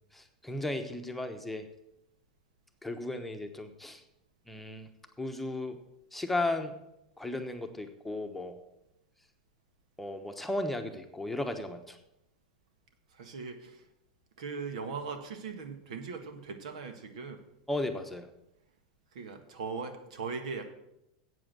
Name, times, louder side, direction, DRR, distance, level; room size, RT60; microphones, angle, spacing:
voice 1, 0.1-1.7 2.8-4.0 4.5-4.9 5.2-5.8 6.1-6.8 7.2-8.6 10.0-12.0 17.7-18.3, left 2 dB, 5° left, 5 dB, 1.1 m, -35 dB
voice 2, 13.1-13.8 14.4-17.5 19.1-20.7, right 5 dB, 80° right, 7 dB, 1.6 m, -39 dB
8.1 x 7.7 x 7.6 m, 0.85 s
hypercardioid pair, 120°, 4 cm